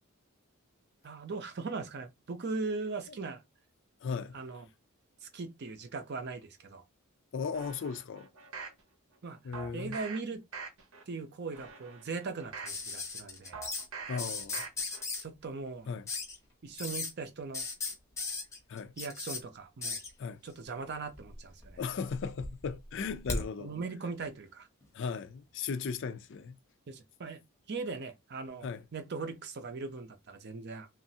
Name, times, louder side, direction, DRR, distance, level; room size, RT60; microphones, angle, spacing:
voice 1, 1.0-3.4 4.3-4.7 5.2-6.8 9.2-9.4 9.7-10.4 11.1-13.6 15.2-15.9 16.6-17.7 19.0-20.0 20.4-21.8 23.6-24.7 26.9-27.4 27.7-30.9, right 4 dB, 50° right, 0.5 m, -39 dB
voice 2, 4.0-4.4 7.3-8.3 9.4-10.0 14.1-14.6 15.9-16.1 18.7-18.9 20.2-20.4 21.8-23.7 24.9-26.6 28.6-28.8, left 5 dB, 55° left, 0.4 m, -36 dB
sound 1, 7.5-8.8 9.5-10.2 10.5-11.0 11.5-12.8 13.5-14.2 14.5-15.0 15.4-15.5, right 5 dB, 75° right, 0.8 m, -44 dB
sound 2, 12.7-13.8 14.2-15.2 16.1-16.4 16.8-17.1 17.5-19.4 19.8-20.1 21.1-21.7 22.1-23.5 24.8-24.9, left 3 dB, 15° left, 0.7 m, -37 dB
3.0 x 2.4 x 2.7 m
head